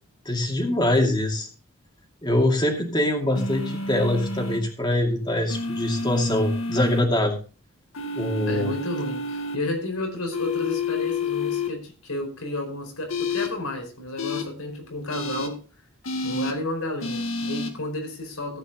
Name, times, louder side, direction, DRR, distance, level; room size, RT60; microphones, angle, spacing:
voice 1, 0.2-1.5 2.2-7.4 8.1-8.7, left 1 dB, 20° left, 2 dB, 2.5 m, -23 dB
sound 1, 3.3-4.6 5.5-7.0 7.9-9.6 10.3-11.7 13.1-13.5 14.2-14.4 15.1-15.5 16.0-16.5 17.0-17.7, left 3 dB, 70° left, 2.0 m, -29 dB
voice 2, 8.5-15.6 16.2-18.6, left 1 dB, 90° left, 3 dB, 4.7 m, -31 dB
15.0 x 8.8 x 3.7 m, 0.35 s
head